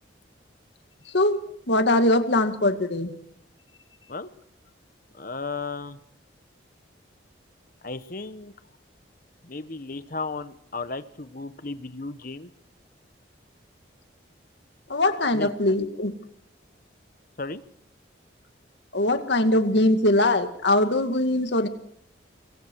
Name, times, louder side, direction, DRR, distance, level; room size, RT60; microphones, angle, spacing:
voice 1, 1.1-1.4 1.7-3.2 14.9-16.1 18.9-21.7, left 1 dB, 65° left, 7 dB, 2.1 m, -22 dB
voice 2, 5.1-6.0 7.8-8.5 9.4-12.5 15.3-15.5 17.4-17.6, left 3 dB, 45° left, 11 dB, 1.2 m, -34 dB
26.0 x 21.5 x 4.7 m, 0.66 s
head